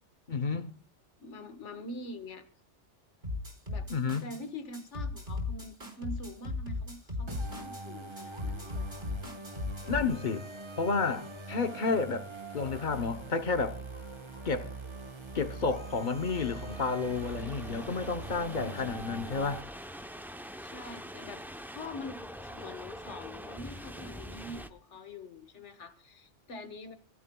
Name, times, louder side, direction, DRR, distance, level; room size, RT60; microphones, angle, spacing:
voice 1, 0.3-0.7 3.9-4.3 9.9-10.5 10.8-12.3 12.5-13.8 14.4-14.7 15.3-19.7, left 4 dB, 45° left, 0.9 m, -31 dB
voice 2, 1.2-2.4 3.7-3.9 4.2-8.9 18.6-19.1 20.6-21.4 21.7-26.9, left 2 dB, 80° left, 1.7 m, -44 dB
sound 1, 3.2-4.4 4.7-7.8 8.2-10.1, left 3 dB, 45° right, 4.2 m, -37 dB
sound 2, 7.3-19.6, right 3 dB, 25° right, 1.3 m, -43 dB
sound 3, 11.2-24.7, equal, ahead, 0.5 m, -46 dB
27.5 x 15.5 x 2.3 m
omnidirectional pair, 1.2 m